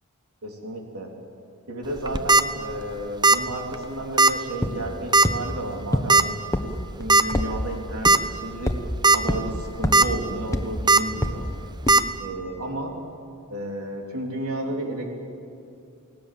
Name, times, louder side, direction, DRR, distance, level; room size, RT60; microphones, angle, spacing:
voice 1, 0.4-1.1 1.7-6.4 7.0-8.7 9.1-11.5 12.2-12.9 13.5-15.1, right 1 dB, 80° right, 1 dB, 3.6 m, -32 dB
sound 1, 2.0-2.4 3.2-3.5 3.7-3.8 4.2-4.3 5.1-5.4 6.1-6.2 7.1-7.2 7.7-7.8 8.0-8.2 8.8-9.2 9.6-10.0 10.9-11.0 11.9-12.0, right 3 dB, 20° right, 0.7 m, -16 dB
sound 2, 4.6-4.7 5.2-5.3 5.9-6.0 6.5-6.6 7.0-7.5 8.0-8.1 8.7-8.8 9.3-9.4 9.8-9.9 10.5-10.6 11.2-11.3 11.9-12.0, left 1 dB, 15° left, 1.3 m, -23 dB
29.5 x 18.0 x 7.8 m, 2.4 s
head